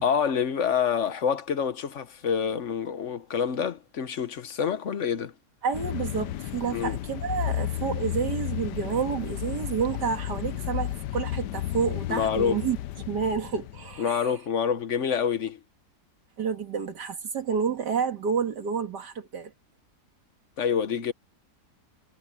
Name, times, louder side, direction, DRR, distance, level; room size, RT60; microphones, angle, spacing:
voice 1, 0.0-5.3 6.7-7.0 12.1-12.6 14.0-15.6 20.6-21.1, left 7 dB, 50° left, 1.1 m, -27 dB
voice 2, 5.6-14.3 16.4-19.5, right 6 dB, 85° right, 2.5 m, -29 dB
sound 1, 5.7-14.0, left 13 dB, 85° left, 1.3 m, -33 dB
omnidirectional pair, 1.8 m